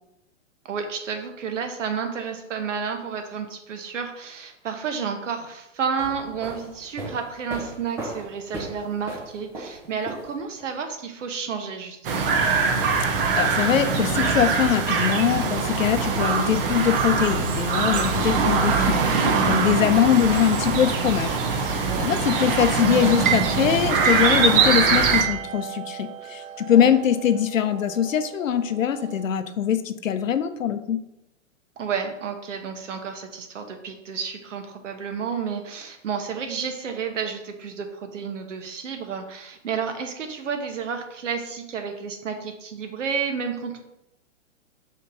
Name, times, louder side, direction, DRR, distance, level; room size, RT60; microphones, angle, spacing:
voice 1, 0.6-12.3 21.8-22.2 26.7-27.0 31.8-43.8, right 6 dB, 70° right, 6 dB, 1.1 m, -31 dB
sound 1, 5.8-10.7, right 1 dB, 5° right, 0.4 m, -37 dB
sound 2, 12.0-25.2, right 5 dB, 45° right, 1.0 m, -22 dB
voice 2, 13.0-31.0, left 9 dB, 75° left, 10 dB, 0.7 m, -23 dB
sound 3, 20.6-29.3, right 9 dB, 85° right, 0.8 m, -35 dB
5.4 x 3.3 x 5.4 m, 0.85 s
hypercardioid pair, 120°, 39 cm